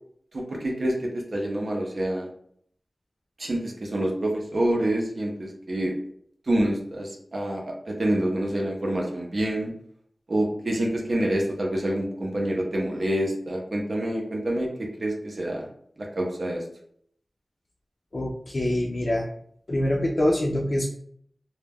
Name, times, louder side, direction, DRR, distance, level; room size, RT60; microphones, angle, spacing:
voice 1, 0.3-2.3 3.4-5.9 6.5-9.7 10.3-15.7 16.0-16.6, right 1 dB, 60° right, 0 dB, 0.6 m, -27 dB
voice 2, 18.1-19.3 19.7-20.9, left 1 dB, 50° left, -3 dB, 0.4 m, -25 dB
2.2 x 2.1 x 3.4 m, 0.65 s
wide cardioid pair, 80°, 0 cm